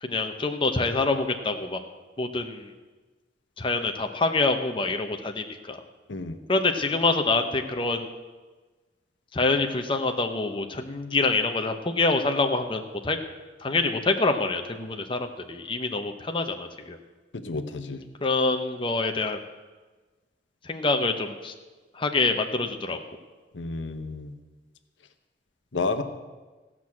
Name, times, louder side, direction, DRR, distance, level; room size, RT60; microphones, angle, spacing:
voice 1, 0.0-1.8 2.2-2.7 3.6-5.8 6.5-8.1 9.3-13.2 13.6-17.0 18.2-19.4 20.6-21.5 21.9-23.0, left 3 dB, 30° left, 5 dB, 0.8 m, -26 dB
voice 2, 17.4-18.0 23.5-24.3 25.7-26.0, left 3 dB, 90° left, 9 dB, 0.9 m, -30 dB
14.5 x 6.1 x 8.5 m, 1.3 s
head